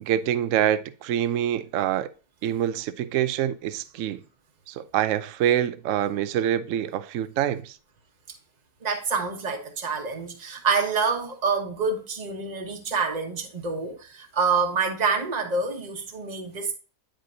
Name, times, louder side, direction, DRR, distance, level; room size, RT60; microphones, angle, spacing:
voice 1, 0.0-2.1 2.4-4.2 4.7-7.7, right 10 dB, 65° right, 0.9 m, -25 dB
voice 2, 8.8-16.7, right 5 dB, 30° right, 1.2 m, -27 dB
10.5 x 4.5 x 2.7 m
omnidirectional pair, 1.7 m